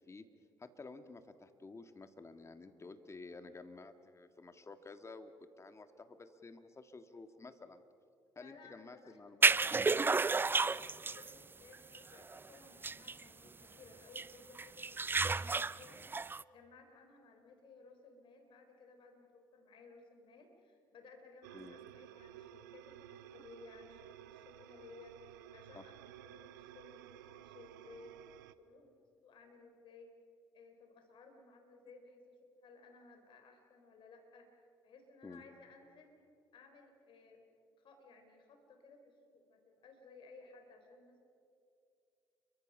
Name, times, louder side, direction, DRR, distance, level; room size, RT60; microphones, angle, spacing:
voice 1, 0.6-5.3 5.6-7.8 8.4-10.0 21.5-21.8 25.7-25.8 35.2-35.4, left 3 dB, 30° left, 8 dB, 1.9 m, -52 dB
voice 2, 8.4-28.2 28.6-30.1 30.5-34.5 34.8-36.1 36.5-37.4 37.8-41.2, left 3 dB, 55° left, 4 dB, 3.9 m, -59 dB
sound 1, 9.4-11.3 11.7-12.0 12.3-12.4 12.8-13.2 14.2-14.3 14.6-16.4, right 4 dB, 20° right, 0.5 m, -31 dB
sound 2, 21.4-28.5, right 12 dB, 85° right, 0.6 m, -54 dB
30.0 x 23.5 x 5.6 m, 2.5 s
hypercardioid pair, 50°, 10 cm